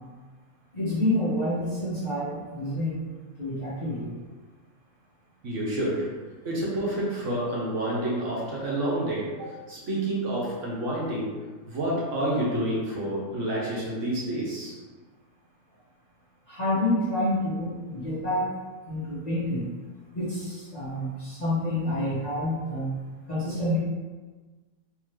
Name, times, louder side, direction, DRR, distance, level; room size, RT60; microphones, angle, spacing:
voice 1, 0.7-3.0 3.4-4.1 16.5-18.5 18.9-19.7 20.1-23.0 23.3-23.8, left 1 dB, 30° left, -10 dB, 1.0 m, -28 dB
voice 2, 5.4-6.1 6.4-14.7, right 1 dB, 60° right, -6 dB, 1.2 m, -29 dB
3.7 x 3.0 x 3.1 m, 1.3 s
omnidirectional pair, 1.5 m